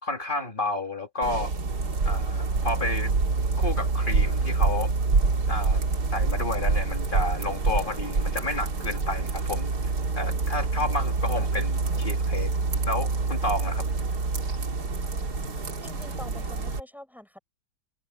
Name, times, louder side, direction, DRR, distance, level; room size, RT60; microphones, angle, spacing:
voice 1, 0.0-1.5 2.0-3.1 3.6-4.9 5.5-5.8 6.1-9.7 10.2-12.5 12.9-13.9, left 2 dB, 25° left, 2.2 m, -31 dB
sound 1, 1.2-16.8, right 4 dB, 55° right, 2.9 m, -26 dB
voice 2, 15.8-17.4, left 1 dB, ahead, 5.3 m, -45 dB
omnidirectional pair, 2.1 m